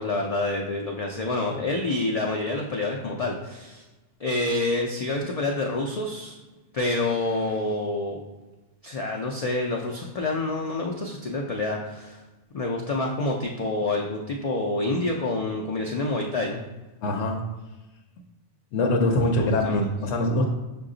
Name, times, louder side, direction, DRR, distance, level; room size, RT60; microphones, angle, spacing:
voice 1, 0.0-3.8 4.2-6.3 6.7-8.2 8.8-12.2 12.5-16.6 19.2-19.9, left 2 dB, 55° left, 0 dB, 0.4 m, -27 dB
voice 2, 17.0-17.4 18.7-20.5, left 1 dB, 85° left, 2 dB, 0.9 m, -23 dB
5.6 x 2.3 x 3.7 m, 1.1 s
omnidirectional pair, 1.1 m